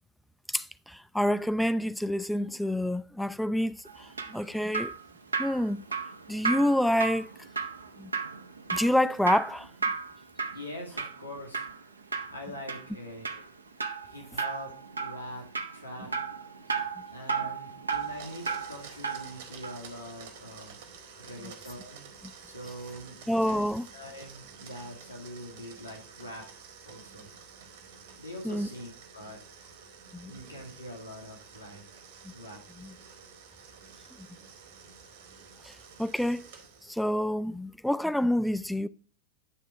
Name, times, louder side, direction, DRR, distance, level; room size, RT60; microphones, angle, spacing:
voice 1, 0.5-4.9 5.4-5.8 6.3-7.3 8.0-8.1 8.7-9.7 23.3-23.8 28.4-28.7 30.1-30.3 32.8-32.9 35.6-36.5 36.8-38.9, left 1 dB, ahead, 0.3 m, -28 dB
Drip, 3.9-19.3 19.6-19.8, right 5 dB, 75° right, 0.6 m, -34 dB
voice 2, 10.5-12.0 12.3-13.5 14.0-14.7 15.0-15.5 15.7-16.1 17.1-20.8 21.2-22.1 22.4-23.6 23.9-26.4 26.8-27.3 28.2-29.7 30.2-32.0 32.3-32.6, left 1 dB, 85° left, 1.8 m, -43 dB
Domestic sounds home sounds, 17.9-37.1, right 6 dB, 55° right, 1.3 m, -50 dB
9.5 x 3.5 x 4.7 m
figure-of-eight pair, 90°, 0 cm